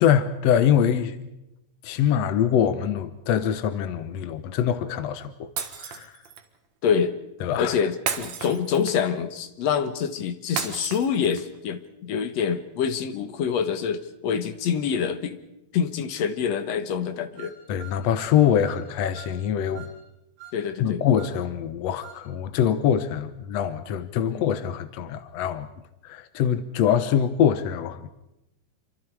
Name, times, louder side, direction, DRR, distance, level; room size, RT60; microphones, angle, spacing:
voice 1, 0.0-1.2 1.8-5.5 5.8-6.1 7.4-7.8 17.7-19.9 20.8-25.7 26.0-28.1, left 9 dB, 80° left, 1.5 m, -24 dB
Shatter, 5.6-6.5 8.1-9.2 10.6-11.6, right 7 dB, 55° right, 2.4 m, -33 dB
voice 2, 6.8-7.2 7.6-15.4 15.7-17.5 20.5-21.0 24.3-24.5, left 7 dB, 60° left, 2.0 m, -26 dB
sound 1, 17.4-18.9 19.1-19.4 19.7-20.0 20.4-20.6 21.1-21.4 22.0-22.2, right 9 dB, 80° right, 5.5 m, -45 dB
28.0 x 25.0 x 4.8 m
omnidirectional pair, 4.2 m